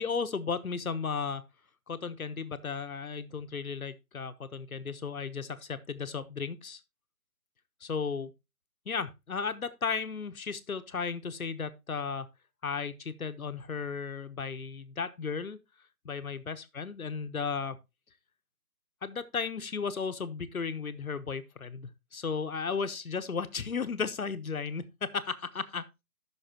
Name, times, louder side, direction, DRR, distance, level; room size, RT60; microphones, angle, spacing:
voice 1, 0.0-1.4 1.9-6.8 7.8-8.3 8.9-12.3 12.6-15.6 16.0-17.8 19.0-25.8, left 5 dB, 70° left, 1.1 m, -35 dB
12.5 x 6.4 x 2.9 m
figure-of-eight pair, 175°, 44 cm